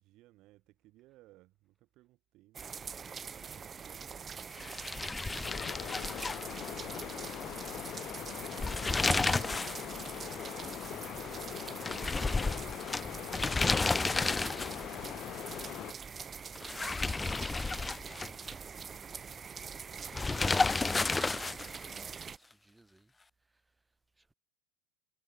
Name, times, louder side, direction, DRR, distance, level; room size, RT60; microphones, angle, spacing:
voice 1, 0.0-2.8 3.1-4.9 6.4-7.5, right 18 dB, 45° right, 3.4 m, -62 dB
sound 1, 2.5-22.4, right 6 dB, 25° right, 2.8 m, -44 dB
sound 2, 4.6-7.0 7.3-7.4 8.4-9.8 10.1-10.2 11.8-14.9 16.5-18.5 20.1-21.8, left 3 dB, 15° left, 0.4 m, -31 dB
sound 3, 5.4-15.9, left 12 dB, 40° left, 0.9 m, -42 dB
voice 2, 6.6-7.8 8.7-20.7 21.4-23.1 23.4-24.3, right 2 dB, 10° right, 3.5 m, -62 dB
figure-of-eight pair, 85°, 0 cm